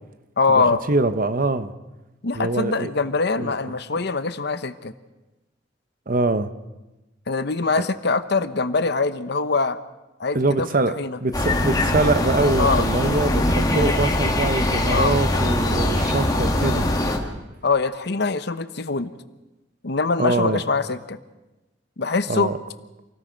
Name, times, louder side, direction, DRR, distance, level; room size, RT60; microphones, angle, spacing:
voice 1, 0.4-0.8 2.2-4.9 7.3-9.8 10.2-10.7 11.0-11.2 12.6-12.8 13.7-13.8 14.9-15.2 17.6-19.1 19.8-21.2 22.0-22.5, left 4 dB, 60° left, 12 dB, 0.9 m, -23 dB
voice 2, 0.9-1.7 2.3-2.9 3.4-3.5 6.1-6.5 7.8-7.9 10.3-10.9 11.2-16.9 20.2-20.6 22.3-22.6, right 2 dB, 50° right, 11 dB, 1.0 m, -23 dB
sound 1, 11.3-17.2, left 1 dB, 20° left, 2.3 m, -22 dB
27.5 x 18.0 x 5.2 m, 1.1 s
head